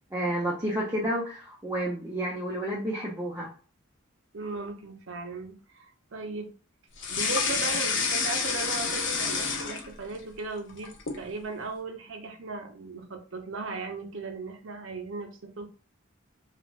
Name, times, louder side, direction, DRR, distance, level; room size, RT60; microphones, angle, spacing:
voice 1, 0.1-3.5, right 1 dB, 10° right, -5 dB, 0.5 m, -30 dB
voice 2, 4.3-6.5 7.1-15.7, right 3 dB, 65° right, 4 dB, 0.6 m, -37 dB
sound 1, 7.0-10.2 10.6-11.3, left 5 dB, 55° left, 0.6 m, -28 dB
2.5 x 2.4 x 3.1 m, 0.38 s
head